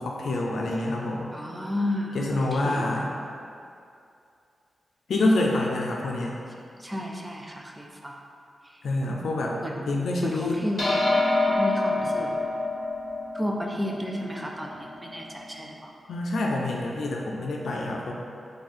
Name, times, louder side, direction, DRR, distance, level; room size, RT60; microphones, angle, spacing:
voice 1, 0.0-1.3 2.1-3.1 5.1-6.4 8.8-9.6 9.9-10.6 16.1-18.1, left 2 dB, 80° left, -1 dB, 0.4 m, -26 dB
voice 2, 1.3-3.0 6.8-8.2 9.6-9.9 10.2-11.1 11.4-12.4 13.3-15.9, left 1 dB, 10° right, 0 dB, 0.4 m, -32 dB
sound 1, 10.8-15.4, left 2 dB, 40° left, 1.2 m, -27 dB
4.1 x 2.7 x 4.3 m, 2.5 s
wide cardioid pair, 145°, 0 cm